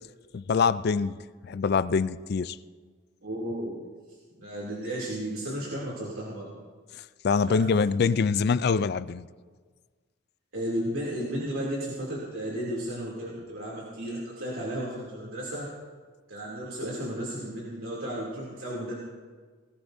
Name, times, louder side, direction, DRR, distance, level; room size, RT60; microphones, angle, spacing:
voice 1, 0.3-1.2 1.4-2.6 7.2-9.3, left 5 dB, 45° left, 15 dB, 0.3 m, -24 dB
voice 2, 3.2-3.8 4.4-6.5 7.5-7.7 10.5-15.7 16.3-18.9, right 1 dB, 70° right, -5 dB, 2.8 m, -34 dB
19.0 x 17.5 x 2.7 m, 1.5 s
head